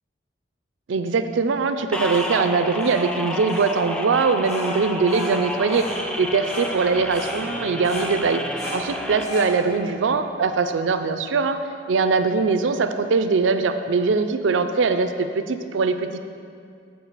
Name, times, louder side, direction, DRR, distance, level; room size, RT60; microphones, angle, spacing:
voice 1, 0.9-5.9 6.2-8.4 8.7-11.6 11.9-16.2, right 4 dB, 90° right, 9 dB, 0.4 m, -22 dB
sound 1, 1.8-11.5, left 1 dB, 65° left, 2.0 m, -38 dB
sound 2, 1.9-9.2, left 1 dB, 5° left, 0.3 m, -31 dB
7.5 x 4.6 x 6.6 m, 2.3 s
head